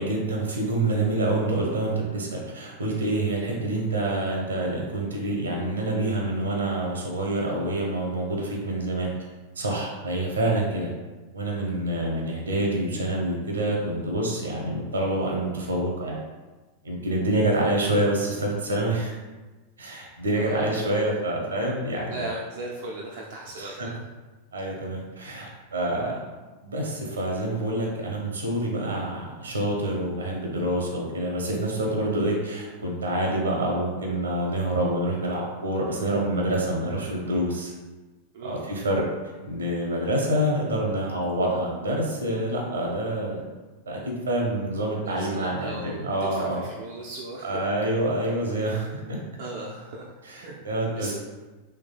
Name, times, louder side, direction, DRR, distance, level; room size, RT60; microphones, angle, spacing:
voice 1, 0.0-9.1 9.6-10.9 11.3-16.2 16.8-19.1 19.8-22.3 23.6-23.9 24.5-26.2 26.6-37.7 38.4-39.0 39.4-43.5 43.9-46.7 47.4-49.2 50.2-51.1, right 1 dB, 70° right, -1 dB, 0.8 m, -27 dB
voice 2, 20.3-20.6 22.1-23.7 38.3-38.6 45.0-47.7 49.4-50.6 50.9-51.1, right 2 dB, 55° right, -4 dB, 0.4 m, -37 dB
3.4 x 3.3 x 2.3 m, 1.2 s
figure-of-eight pair, 90°, 0 cm